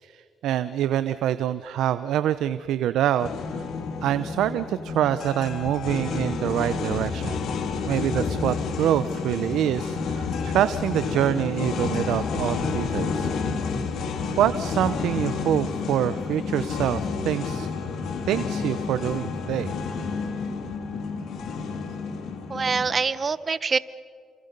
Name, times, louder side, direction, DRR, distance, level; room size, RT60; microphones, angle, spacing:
voice 1, 0.0-3.7 4.0-7.4 7.9-13.3 14.4-17.7 18.3-19.7, right 11 dB, 80° right, 13 dB, 0.7 m, -26 dB
sound 1, 3.2-23.0, left 4 dB, 75° left, 2.7 m, -30 dB
voice 2, 22.5-23.8, right 5 dB, 40° right, 15 dB, 1.0 m, -24 dB
29.0 x 27.0 x 5.4 m, 2.2 s
cardioid pair, 80°, 0 cm